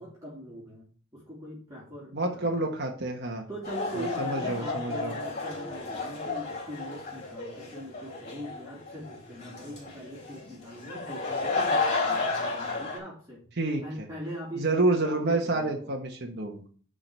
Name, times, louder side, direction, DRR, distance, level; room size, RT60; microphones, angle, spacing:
voice 1, 0.0-2.7 3.5-13.5 13.8-15.9, equal, 15° right, -6 dB, 2.6 m, -41 dB
voice 2, 2.1-3.4 4.0-5.1 13.6-13.8 14.6-16.6, right 2 dB, 55° right, 1 dB, 1.3 m, -28 dB
sound 1, 3.6-13.0, left 3 dB, 35° left, 3.9 m, -32 dB
10.5 x 4.0 x 6.6 m, 0.43 s
head